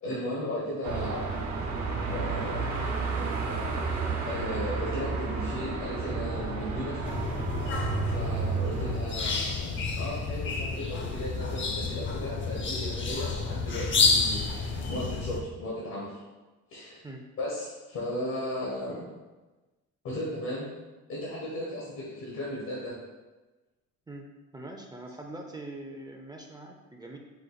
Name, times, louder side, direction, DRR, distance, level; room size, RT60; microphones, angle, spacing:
voice 1, 0.0-1.4 2.1-2.7 4.3-7.0 8.0-16.2 16.7-17.0 17.4-19.1 20.0-20.7 21.1-22.9, left 1 dB, 75° left, -5 dB, 1.3 m, -36 dB
Car passing by / Traffic noise roadway noise / Engine, 0.8-9.0, right 4 dB, 70° right, 0.9 m, -31 dB
sound 1, 7.0-15.4, left 4 dB, 40° left, 0.6 m, -30 dB
voice 2, 24.1-27.2, right 2 dB, 15° right, 1 dB, 0.5 m, -43 dB
5.1 x 2.4 x 4.0 m, 1.2 s
cardioid pair, 90°, 30 cm